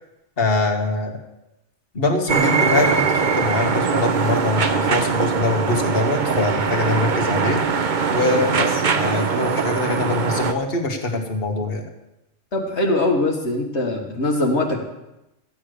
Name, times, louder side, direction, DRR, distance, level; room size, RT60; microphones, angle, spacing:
voice 1, 0.4-1.1 1.9-11.9, left 2 dB, 55° left, 2 dB, 1.9 m, -23 dB
sound 1, 2.3-10.5, right 5 dB, 45° right, 0.9 m, -21 dB
voice 2, 12.5-14.8, left 2 dB, 75° left, 1 dB, 1.9 m, -22 dB
14.0 x 9.9 x 6.7 m, 0.92 s
omnidirectional pair, 1.2 m